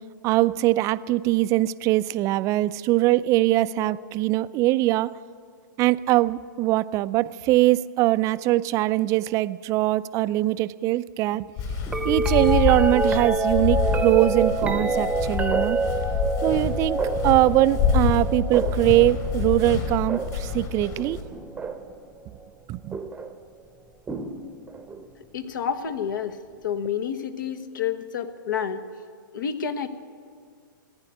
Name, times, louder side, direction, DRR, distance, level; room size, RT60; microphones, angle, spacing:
voice 1, 0.2-5.1 5.8-11.5 12.0-15.8 16.4-21.2 22.7-23.0, right 16 dB, 30° right, 15 dB, 0.4 m, -22 dB
Walk footsteps, 11.6-21.2, left 6 dB, 40° left, 3.7 m, -27 dB
sound 1, 11.9-22.0 22.9-23.3 24.1-25.1 26.8-26.9, right 3 dB, 10° right, 0.8 m, -28 dB
voice 2, 25.3-26.4 26.6-28.8 29.3-29.9, left 7 dB, 70° left, 10 dB, 1.2 m, -29 dB
15.5 x 9.7 x 9.3 m, 2.1 s
hypercardioid pair, 120°, 11 cm